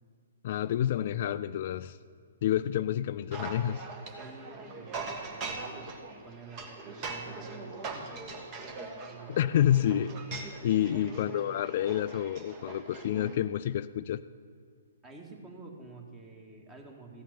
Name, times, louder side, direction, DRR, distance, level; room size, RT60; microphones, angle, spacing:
voice 1, 0.4-2.0 2.4-3.9 9.3-14.2, left 11 dB, 50° left, 13 dB, 0.3 m, -29 dB
sound 1, 3.3-13.4, right 3 dB, 30° right, 1.6 m, -41 dB
voice 2, 4.1-5.9 6.2-9.6 10.9-11.3 15.0-17.2, right 3 dB, 15° right, 1 dB, 2.0 m, -49 dB
15.0 x 5.8 x 9.7 m, 2.2 s
hypercardioid pair, 130°, 0 cm